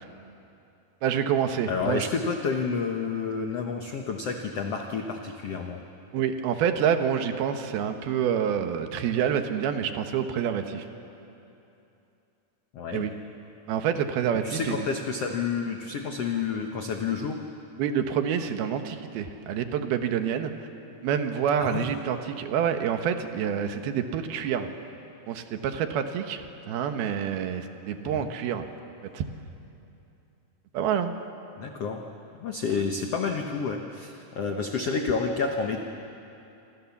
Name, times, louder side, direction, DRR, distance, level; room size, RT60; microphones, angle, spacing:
voice 1, 1.0-2.1 6.1-10.9 12.9-13.1 13.7-14.9 17.8-20.7 21.0-24.7 25.3-28.6 29.1-29.2 30.7-31.1, right 8 dB, 70° right, 7 dB, 2.9 m, -27 dB
voice 2, 1.7-5.8 12.7-13.1 14.4-17.4 21.6-21.9 28.0-28.3 31.6-32.0 32.4-35.8, left 5 dB, 85° left, 3 dB, 1.3 m, -29 dB
27.0 x 26.5 x 7.2 m, 2.8 s
omnidirectional pair, 4.7 m